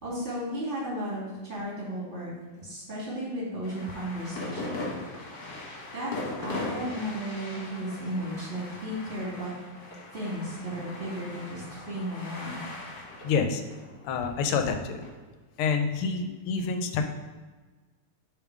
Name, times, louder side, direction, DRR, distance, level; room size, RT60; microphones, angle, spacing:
voice 1, 0.0-2.3 2.6-4.8 5.2-5.4 5.9-6.1 6.4-9.5 10.1-12.6, equal, 30° right, -7 dB, 2.5 m, -34 dB
sound 1, 3.6-15.1, left 2 dB, 60° left, 1.9 m, -40 dB
voice 2, 13.2-13.6 14.0-15.0 15.6-17.0, left 5 dB, 90° left, 6 dB, 1.6 m, -27 dB
7.1 x 3.8 x 4.7 m, 1.3 s
omnidirectional pair, 2.4 m